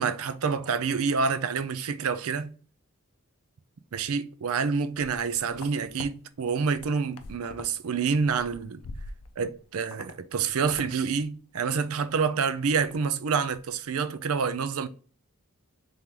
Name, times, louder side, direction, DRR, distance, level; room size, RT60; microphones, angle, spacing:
voice 1, 0.0-2.5 3.9-8.8 9.4-14.9, right 5 dB, 75° right, 0.5 m, -27 dB
sound 1, 4.9-6.1 6.5-7.7 8.0-9.5 9.9-10.1 10.4-10.9 11.2-11.3 11.7-12.3 12.7-13.0 13.3-13.6, left 3 dB, 80° left, 0.5 m, -44 dB
3.6 x 2.9 x 3.6 m
head